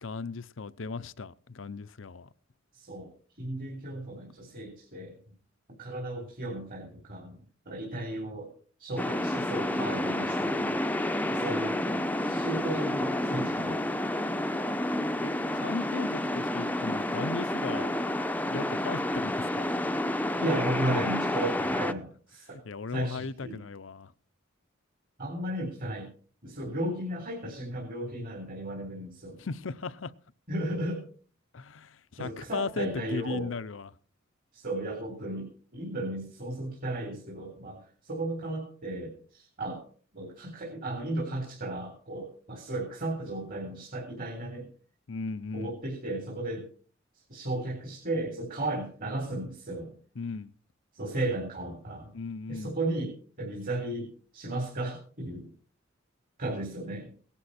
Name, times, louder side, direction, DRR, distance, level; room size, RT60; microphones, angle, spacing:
voice 1, 0.0-2.3 15.2-17.9 18.4-19.7 22.6-24.1 29.4-30.1 31.5-33.9 45.1-45.8 50.2-50.5 52.1-52.7, left 4 dB, 70° left, 0.7 m, -37 dB
voice 2, 2.7-3.1 3.4-5.2 5.8-8.5 8.8-10.8 11.3-13.9 20.4-22.6 22.9-23.6 25.2-26.1 26.4-29.4 30.5-31.0 32.2-33.5 34.5-39.8 40.1-44.7 45.5-46.7 47.3-49.9 50.9-52.1 52.5-55.5 56.4-57.1, right 1 dB, 45° right, 3.8 m, -35 dB
sound 1, 9.0-21.9, left 1 dB, 10° left, 0.7 m, -30 dB
18.5 x 11.5 x 4.3 m
head